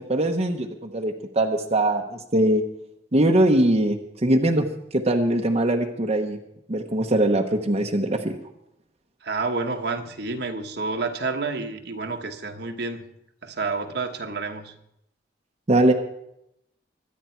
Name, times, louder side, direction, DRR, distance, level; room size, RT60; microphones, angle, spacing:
voice 1, 0.0-2.6 3.1-6.4 6.7-8.4 15.7-15.9, right 1 dB, 35° right, 2 dB, 1.0 m, -22 dB
voice 2, 9.2-13.0 13.4-14.7, right 3 dB, 60° right, 5 dB, 1.2 m, -29 dB
23.5 x 9.4 x 4.5 m, 0.80 s
head